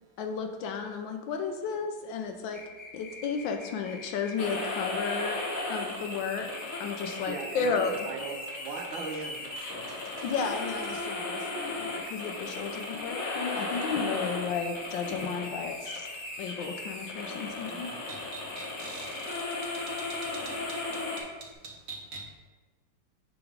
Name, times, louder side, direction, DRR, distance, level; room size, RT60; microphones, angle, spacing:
voice 1, 0.2-2.6 2.9-5.4 5.7-6.5 6.8-8.1 10.2-16.1 16.4-17.9, left 5 dB, 75° left, 1.3 m, -33 dB
sound 1, 2.5-5.5 6.5-9.5 10.5-13.5 14.5-17.5 18.5-19.3 19.5-20.3 20.5-21.3 21.5-21.6, left 3 dB, 25° left, 0.4 m, -46 dB
sound 2, 4.4-21.2, left 2 dB, 55° left, 1.2 m, -36 dB
voice 2, 7.3-9.9 17.7-18.0, right 4 dB, 80° right, 1.5 m, -39 dB
voice 3, 9.8-10.5 10.8-10.9 18.1-19.1 20.3-20.8 21.6-22.3, right 4 dB, 50° right, 1.5 m, -44 dB
6.9 x 3.0 x 5.0 m
omnidirectional pair, 2.1 m